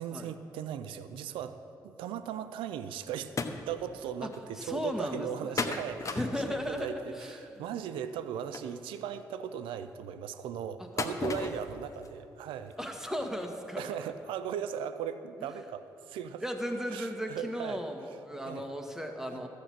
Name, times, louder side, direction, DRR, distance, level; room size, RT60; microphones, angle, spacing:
voice 1, 0.0-1.6 1.8-3.3 3.7-12.8 13.8-16.4 16.9-17.8 18.5-18.6 19.3-19.4, right 8 dB, 80° right, 11 dB, 0.5 m, -38 dB
sound 1, 3.4-3.6 4.0-4.1 4.3-4.4 5.6-6.9 8.5-8.6 11.0-11.7 12.0-12.1 12.7-12.8 13.3-13.4 13.7-13.8, left 4 dB, 40° left, 1.1 m, -33 dB
voice 2, 4.6-5.6 6.1-7.6 10.8-10.9 12.8-14.0 16.4-19.5, equal, 5° right, 3 dB, 1.8 m, -36 dB
13.0 x 8.2 x 6.0 m, 2.7 s
hypercardioid pair, 45°, 9 cm